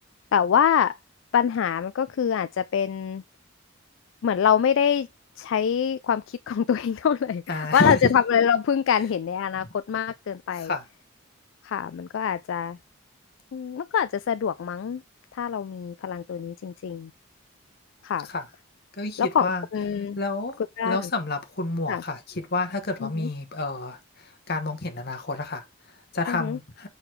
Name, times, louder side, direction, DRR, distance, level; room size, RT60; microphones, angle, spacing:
voice 1, 0.3-0.9 1.3-3.2 4.2-5.1 5.4-10.7 11.6-12.8 13.5-15.0 15.3-17.1 18.0-18.3 19.2-20.2 20.8-21.1 21.9-22.0 23.0-23.3 26.3-26.6, left 8 dB, 65° left, 0.3 m, -25 dB
voice 2, 7.5-8.0 9.6-9.7 10.5-10.9 18.2-18.5 18.9-19.7 19.9-20.6 20.8-26.9, left 2 dB, 50° left, 1.1 m, -30 dB
6.5 x 4.0 x 4.5 m
head